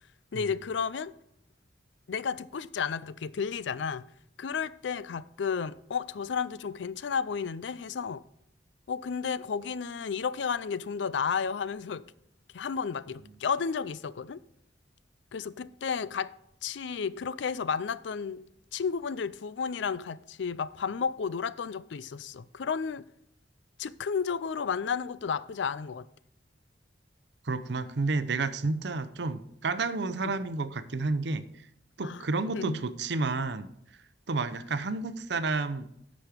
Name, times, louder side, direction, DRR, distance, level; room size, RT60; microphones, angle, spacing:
voice 1, 0.3-1.1 2.1-4.0 4.4-8.2 8.9-12.0 12.5-14.4 15.3-16.3 16.6-18.4 18.7-23.0 23.8-26.0 30.2-30.3 32.0-32.8, left 6 dB, 75° left, 0.4 m, -32 dB
voice 2, 27.5-31.4 32.0-33.7 34.3-35.9, right 3 dB, 70° right, 0.7 m, -30 dB
10.5 x 6.2 x 5.1 m
head